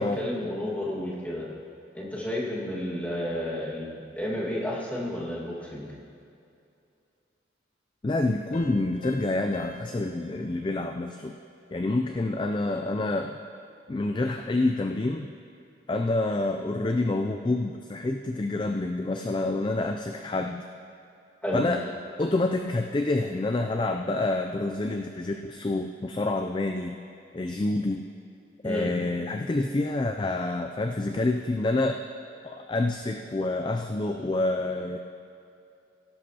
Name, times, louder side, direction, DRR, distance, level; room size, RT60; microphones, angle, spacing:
voice 1, 0.0-1.5 1.9-5.9 21.4-21.6 28.6-28.9, left 1 dB, 10° left, -6 dB, 1.8 m, -31 dB
voice 2, 8.0-11.3 11.7-13.4 13.9-15.3 15.9-20.6 21.5-21.8 22.2-27.0 27.3-28.1 28.6-32.0 32.4-35.0, left 2 dB, 25° left, 5 dB, 0.3 m, -27 dB
sound 1, 8.5-11.8, left 2 dB, 40° left, 0.7 m, -46 dB
17.5 x 11.5 x 2.9 m, 2.6 s
head